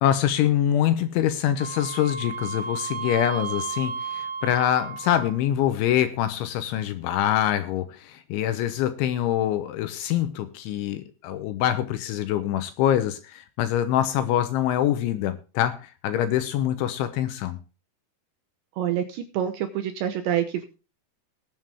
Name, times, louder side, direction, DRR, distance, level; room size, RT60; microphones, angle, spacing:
voice 1, 0.0-17.6, left 11 dB, 80° left, 3.0 m, -25 dB
Wind instrument woodwind instrument, 1.6-5.5, right 6 dB, 30° right, 3.5 m, -33 dB
voice 2, 18.8-20.6, right 10 dB, 80° right, 2.7 m, -27 dB
20.5 x 7.6 x 3.5 m
omnidirectional pair, 6.0 m